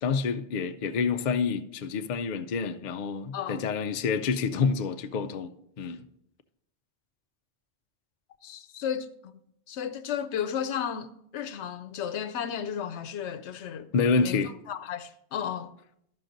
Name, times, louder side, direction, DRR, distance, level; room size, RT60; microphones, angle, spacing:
voice 1, 0.0-6.0 13.9-14.5, left 5 dB, 55° left, 0.6 m, -28 dB
voice 2, 8.4-9.3 9.7-13.9 14.2-15.7, left 8 dB, 85° left, 0.9 m, -34 dB
13.0 x 5.7 x 3.9 m
omnidirectional pair, 1.1 m